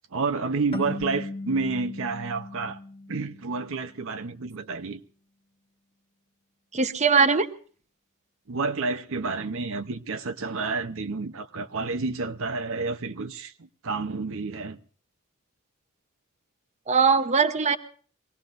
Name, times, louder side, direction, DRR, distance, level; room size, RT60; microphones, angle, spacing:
voice 1, 0.1-2.8 3.1-5.0 8.5-14.8, right 4 dB, 65° right, 0.8 m, -30 dB
sound 1, 0.7-3.9, left 2 dB, 30° left, 1.7 m, -37 dB
voice 2, 6.7-7.5 16.9-17.8, right 5 dB, 30° right, 0.8 m, -20 dB
24.0 x 17.5 x 2.6 m
head